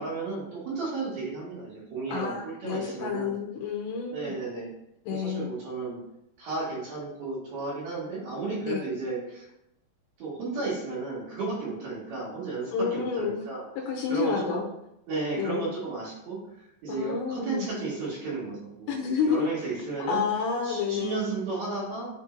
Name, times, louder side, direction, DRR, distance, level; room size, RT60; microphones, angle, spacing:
voice 1, 0.0-3.4 4.1-4.7 5.1-6.0 6.4-9.5 10.2-13.7 14.1-14.6 15.1-19.0 19.2-20.2 20.6-22.1, right 3 dB, 55° right, -8 dB, 3.7 m, -33 dB
voice 2, 2.1-4.3 5.1-5.5 8.7-8.9 12.7-13.4 13.9-14.7 15.4-15.7 16.9-17.7 18.9-19.5 20.1-21.2, left 6 dB, 80° left, 0 dB, 2.6 m, -29 dB
9.7 x 4.4 x 2.6 m, 0.82 s
omnidirectional pair, 5.8 m